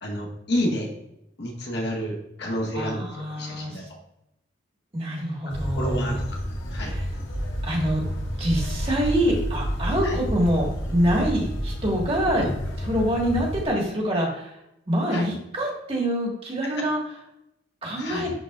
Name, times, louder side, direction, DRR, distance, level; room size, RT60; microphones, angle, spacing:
voice 1, 0.0-0.9 1.4-4.0 5.6-6.4 6.7-6.9 10.0-10.2 12.4-12.5 15.1-15.3 16.6-16.8 18.0-18.3, equal, 55° left, 0 dB, 1.4 m, -30 dB
voice 2, 2.7-3.9 4.9-6.2 6.8-7.0 7.6-8.0 8.4-12.5 12.8-14.5 14.9-17.0 17.8-18.3, equal, 30° right, -1 dB, 1.5 m, -25 dB
sound 1, 5.5-13.7, equal, 75° left, 1.2 m, -30 dB
11.0 x 3.9 x 2.4 m, 0.84 s
head